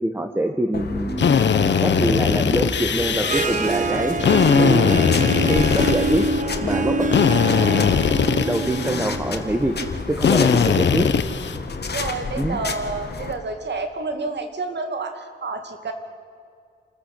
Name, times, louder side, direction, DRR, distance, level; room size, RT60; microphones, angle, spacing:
voice 1, 0.0-4.1 4.6-5.0 5.5-6.3 6.6-7.1 8.4-9.8 10.1-11.1 12.4-12.6, right 1 dB, 10° right, 5 dB, 1.5 m, -24 dB
sound 1, 0.7-13.3, left 4 dB, 65° left, 1.9 m, -31 dB
Drill, 1.2-3.5 4.2-6.4 7.1-9.0 10.2-11.6, left 6 dB, 80° left, 1.1 m, -20 dB
Harp, 3.0-10.1, right 3 dB, 45° right, 1.2 m, -26 dB
voice 2, 11.8-15.9, right 3 dB, 70° right, 6 dB, 2.6 m, -29 dB
27.5 x 14.5 x 8.5 m, 2.3 s
wide cardioid pair, 80°, 18 cm